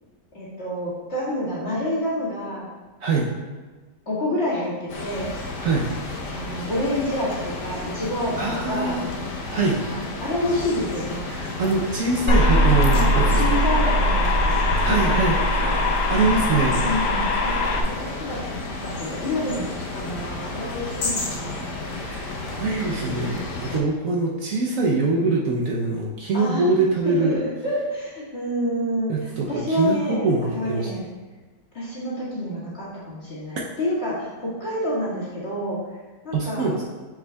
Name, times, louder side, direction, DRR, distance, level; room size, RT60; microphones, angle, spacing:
voice 1, 0.3-2.7 4.1-5.3 6.3-9.0 9.8-11.3 12.9-14.6 14.8-15.8 16.5-18.0 18.3-18.4 18.8-21.8 26.3-26.6 27.0-31.0 31.7-35.8 36.2-36.7, left 1 dB, 40° left, -8 dB, 2.1 m, -28 dB
voice 2, 3.0-3.3 5.6-5.9 8.4-9.1 9.5-9.8 11.3-13.6 14.8-15.4 16.1-16.8 21.9-27.4 29.1-30.9 33.6-33.7 36.3-36.7, right 3 dB, 65° right, -2 dB, 1.0 m, -23 dB
sound 1, 4.9-23.8, left 3 dB, 90° left, 1.5 m, -32 dB
sound 2, 12.3-17.8, left 1 dB, 60° left, 0.9 m, -20 dB
6.8 x 6.3 x 2.3 m, 1.3 s
omnidirectional pair, 1.7 m